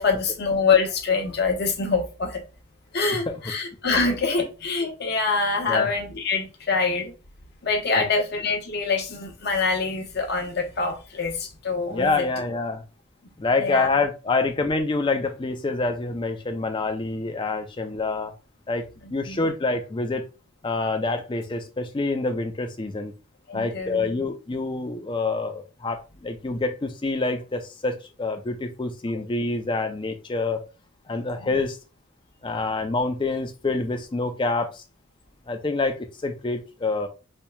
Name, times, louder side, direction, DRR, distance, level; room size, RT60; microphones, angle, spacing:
voice 1, 0.0-2.4 2.9-7.1 7.6-12.2 13.5-13.9 19.0-19.4 23.5-24.1 31.3-31.5, left 4 dB, 50° left, 0.8 m, -25 dB
voice 2, 11.9-12.8 13.4-18.3 18.7-20.2 20.6-23.1 23.5-30.6 31.1-31.8 32.4-34.8 35.5-37.1, left 3 dB, 20° left, 0.4 m, -26 dB
4.3 x 2.9 x 2.2 m
head